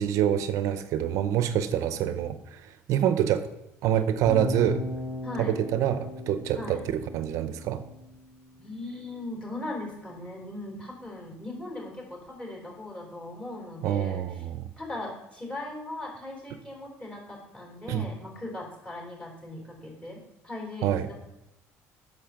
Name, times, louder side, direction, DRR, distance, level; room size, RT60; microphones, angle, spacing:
voice 1, 0.0-3.5 3.8-4.8 5.4-7.8 13.8-14.6 17.9-18.1 20.8-21.1, right 10 dB, 65° right, 11 dB, 0.6 m, -26 dB
sound 1, 4.3-8.3, equal, ahead, 2.2 m, -36 dB
voice 2, 5.2-5.6 6.6-6.8 8.6-14.4 14.8-21.1, left 2 dB, 20° left, 0 dB, 3.8 m, -39 dB
8.8 x 6.6 x 5.8 m, 0.86 s
cardioid pair, 120°, 6 cm